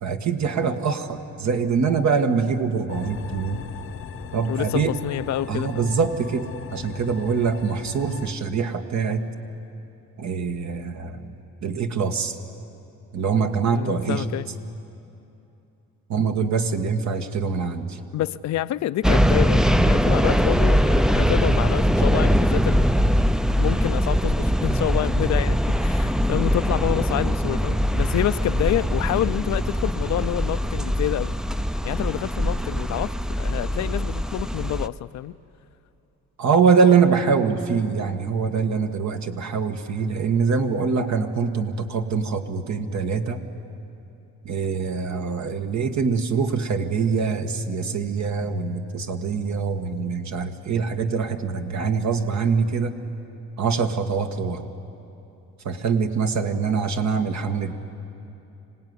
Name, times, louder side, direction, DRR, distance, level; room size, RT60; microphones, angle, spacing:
voice 1, 0.0-3.6 4.3-4.9 5.5-9.2 10.2-12.4 13.1-14.3 16.1-18.0 36.4-43.4 44.4-53.0 53.6-54.6 55.6-57.7, right 5 dB, 65° right, 1.6 m, -24 dB
sound 1, 2.9-8.3, left 8 dB, 45° left, 0.9 m, -38 dB
voice 2, 4.5-5.9 13.7-14.5 18.1-23.2 23.6-31.3 31.8-35.4, left 13 dB, 65° left, 0.5 m, -28 dB
sound 2, 19.0-34.9, equal, ahead, 0.4 m, -22 dB
25.5 x 17.5 x 9.6 m
cardioid pair, 90°, 30 cm